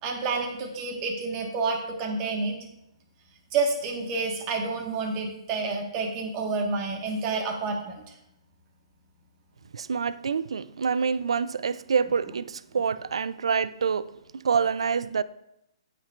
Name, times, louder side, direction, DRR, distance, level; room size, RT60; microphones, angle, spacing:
voice 1, 0.0-2.5 3.5-7.9, right 4 dB, 30° right, 1.5 m, -29 dB
voice 2, 9.7-15.2, right 6 dB, 80° right, 0.3 m, -27 dB
13.0 x 4.4 x 2.5 m
hypercardioid pair, 140°, 3 cm